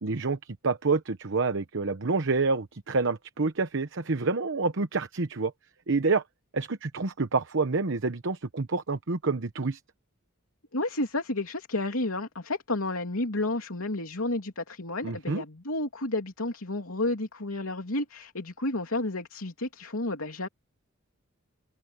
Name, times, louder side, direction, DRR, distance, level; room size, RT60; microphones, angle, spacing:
voice 1, 0.0-5.5 5.9-6.2 6.5-9.8 15.0-15.4, right 3 dB, 65° right, 1.0 m, -28 dB
voice 2, 10.7-20.5, left 2 dB, 80° left, 3.1 m, -31 dB
head